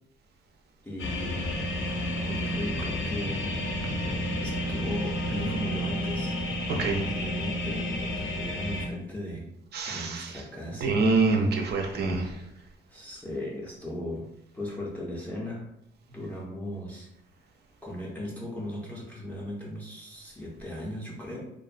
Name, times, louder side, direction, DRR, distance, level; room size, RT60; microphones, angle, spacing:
voice 1, 0.8-1.7 2.2-3.5 4.4-6.4 6.7-9.5 9.9-11.0 12.9-15.7 16.1-17.1 17.8-21.4, left 1 dB, 5° left, -3 dB, 0.5 m, -37 dB
sound 1, 1.0-8.9, equal, 80° left, 0.5 m, -31 dB
voice 2, 6.7-7.0 9.7-10.3 10.8-12.3, right 3 dB, 55° right, 3 dB, 0.5 m, -25 dB
2.5 x 2.1 x 2.4 m, 0.85 s
cardioid pair, 90°, 20 cm